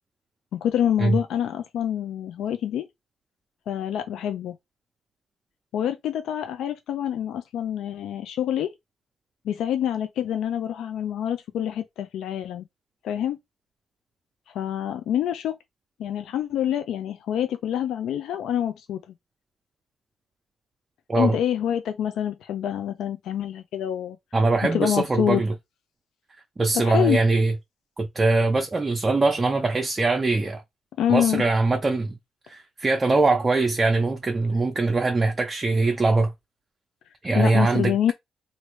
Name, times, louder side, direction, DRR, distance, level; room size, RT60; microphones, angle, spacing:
voice 1, 0.5-2.9 3.7-4.5 5.7-8.7 9.4-12.6 13.0-13.4 14.5-15.5 16.0-19.0 21.2-24.2 24.7-25.4 26.7-27.2 31.0-31.4 37.3-38.1, left 10 dB, 85° left, 0.4 m, -26 dB
voice 2, 24.3-25.5 26.6-27.5 28.0-30.6 31.1-32.2 32.5-36.3 37.2-38.1, right 3 dB, 25° right, 0.6 m, -22 dB
3.1 x 2.6 x 3.0 m
cardioid pair, 95°, 0 cm